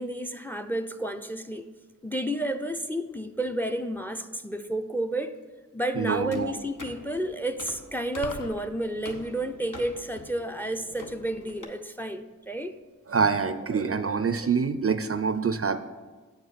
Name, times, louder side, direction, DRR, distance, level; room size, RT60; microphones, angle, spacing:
voice 1, 0.0-1.7 2.0-5.4 5.7-12.8, right 1 dB, 5° left, 9 dB, 0.5 m, -31 dB
voice 2, 6.0-6.5 13.1-15.8, right 5 dB, 45° right, 11 dB, 0.5 m, -26 dB
sound 1, 6.3-11.6, left 2 dB, 65° left, 1.1 m, -46 dB
sound 2, 8.2-8.7, left 6 dB, 90° left, 0.5 m, -39 dB
8.2 x 4.8 x 6.4 m, 1.3 s
cardioid pair, 40°, 33 cm